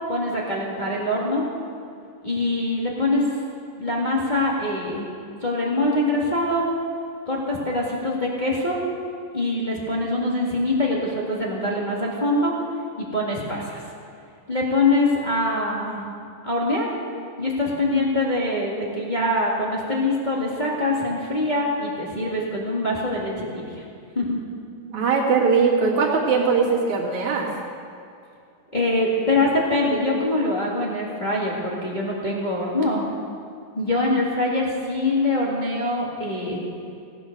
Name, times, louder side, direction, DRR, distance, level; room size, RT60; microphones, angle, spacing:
voice 1, 0.1-1.4 2.2-3.4 3.8-5.1 5.4-6.7 7.2-8.8 9.3-12.5 13.1-13.8 14.5-16.1 16.4-16.9 17.4-23.8 24.1-24.4 28.7-33.1 33.7-36.6, left 2 dB, 20° left, -5 dB, 1.1 m, -24 dB
voice 2, 24.9-27.5, right 5 dB, 60° right, -3 dB, 3.2 m, -20 dB
18.0 x 9.8 x 6.5 m, 2.4 s
omnidirectional pair, 4.0 m